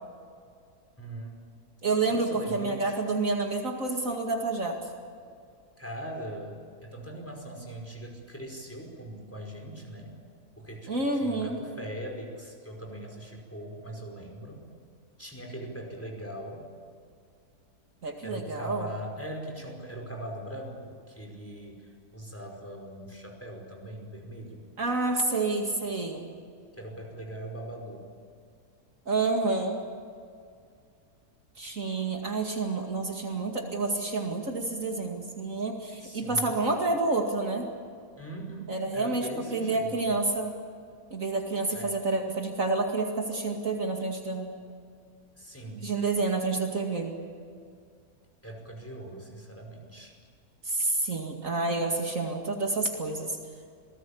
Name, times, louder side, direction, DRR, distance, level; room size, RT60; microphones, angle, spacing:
voice 1, 1.0-1.3 2.1-3.0 5.8-10.2 10.6-14.7 15.2-16.7 18.2-24.6 26.8-28.1 36.0-36.6 38.2-40.2 41.7-41.9 45.4-45.9 48.4-50.2, right 1 dB, 10° left, 1 dB, 5.2 m, -41 dB
voice 2, 1.8-4.8 10.9-11.6 18.0-18.9 24.8-26.3 29.1-29.8 31.6-37.7 38.7-40.5 41.1-44.5 45.8-47.1 50.6-53.4, right 3 dB, 60° right, 2 dB, 2.6 m, -29 dB
27.5 x 19.5 x 8.6 m, 2.3 s
omnidirectional pair, 1.6 m